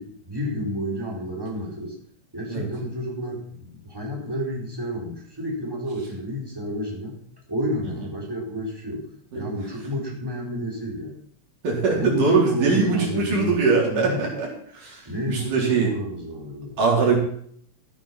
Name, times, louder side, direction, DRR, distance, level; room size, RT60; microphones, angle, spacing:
voice 1, 0.0-2.0 2.3-7.2 7.5-9.1 9.3-11.2 11.9-14.3 15.1-16.8, equal, 5° right, -2 dB, 4.2 m, -30 dB
voice 2, 11.6-14.5 14.7-15.0 15.3-15.9 16.8-17.2, right 4 dB, 75° right, -2 dB, 5.7 m, -21 dB
14.0 x 9.0 x 6.0 m, 0.63 s
omnidirectional pair, 3.7 m